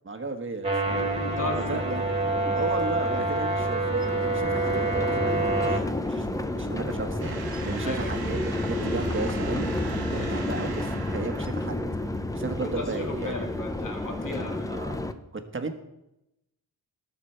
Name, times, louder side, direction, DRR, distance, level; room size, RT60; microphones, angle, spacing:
voice 1, 0.0-0.7 1.5-2.0 2.5-7.4 7.6-8.4 8.7-9.7 10.1-11.8 12.3-13.3 14.7-15.0 15.3-15.7, right 3 dB, 30° right, 6 dB, 1.3 m, -34 dB
sound 1, 0.6-5.8, right 2 dB, 15° right, 1.9 m, -27 dB
sound 2, 0.9-15.1, left 2 dB, 10° left, 0.6 m, -31 dB
voice 2, 1.2-1.8 5.6-5.7 7.8-8.2 10.2-10.4 12.6-14.7, left 2 dB, 50° left, 1 dB, 2.5 m, -35 dB
sound 3, 7.2-11.9, right 4 dB, 65° right, 1.3 m, -37 dB
19.5 x 6.9 x 4.5 m, 0.89 s
wide cardioid pair, 120°, 39 cm